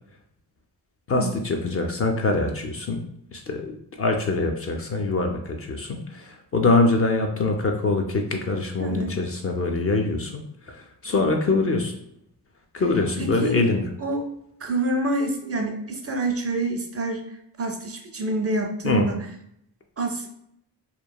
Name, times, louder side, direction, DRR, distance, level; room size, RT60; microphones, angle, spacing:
voice 1, 1.1-3.0 3.3-3.7 4.0-12.0 12.7-13.8 18.8-19.1, left 3 dB, 35° left, 3 dB, 0.4 m, -24 dB
voice 2, 8.8-9.1 13.2-13.6 14.0-14.3 14.6-19.2 20.0-20.3, right 2 dB, 35° right, 4 dB, 0.4 m, -27 dB
2.9 x 2.2 x 2.2 m, 0.73 s
cardioid pair, 70°, 43 cm